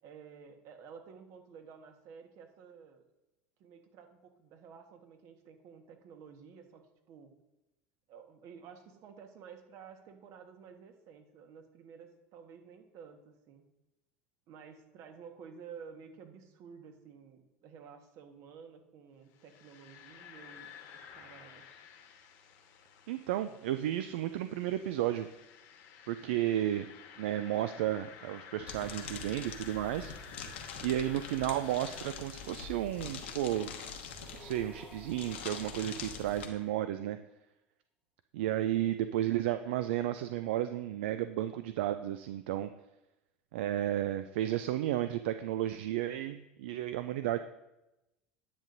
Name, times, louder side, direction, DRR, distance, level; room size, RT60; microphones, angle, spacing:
voice 1, 0.0-3.1 3.6-6.8 7.1-7.3 8.1-13.6 14.5-21.7, right 6 dB, 60° right, 5 dB, 1.4 m, -52 dB
sound 1, 19.3-33.3, left 7 dB, 60° left, 1.3 m, -53 dB
voice 2, 23.1-25.3 26.1-26.9 27.2-30.1 30.5-33.7 34.3-37.2 38.3-42.7 43.5-47.4, right 12 dB, 75° right, 11 dB, 0.4 m, -33 dB
sound 2, 28.7-36.5, left 6 dB, 85° left, 1.1 m, -44 dB
sound 3, 34.1-37.1, left 1 dB, 15° left, 1.2 m, -57 dB
10.0 x 7.9 x 2.6 m, 0.95 s
hypercardioid pair, 80°, 6 cm